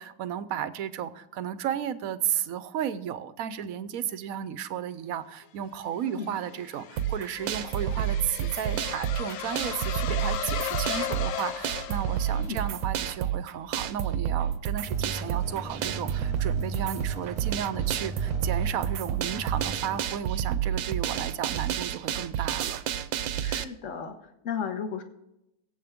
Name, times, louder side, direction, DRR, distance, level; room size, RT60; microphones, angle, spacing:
voice 1, 0.0-22.8, right 9 dB, 60° right, 13 dB, 1.0 m, -33 dB
sound 1, 5.8-12.8, left 9 dB, 75° left, 0.7 m, -36 dB
voice 2, 6.0-6.4 12.3-12.7 23.4-25.0, left 6 dB, 45° left, 5 dB, 1.6 m, -35 dB
sound 2, 7.0-23.6, right 10 dB, 80° right, 1.4 m, -30 dB
sound 3, 14.8-20.0, right 1 dB, 25° right, 1.0 m, -38 dB
23.0 x 8.0 x 3.6 m, 0.88 s
omnidirectional pair, 2.0 m